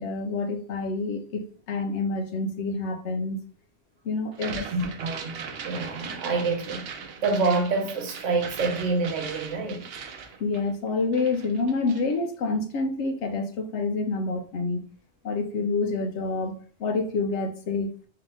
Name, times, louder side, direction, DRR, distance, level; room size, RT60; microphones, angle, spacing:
voice 1, 0.0-3.4 4.0-4.6 10.4-14.8 15.2-17.9, left 3 dB, 75° left, 0.9 m, -28 dB
sound 1, 4.3-10.9 11.1-12.1, right 6 dB, 60° right, 0.8 m, -39 dB
voice 2, 4.4-6.9 7.2-9.9, right 3 dB, 85° right, 1.2 m, -27 dB
3.7 x 2.8 x 3.6 m
omnidirectional pair, 1.2 m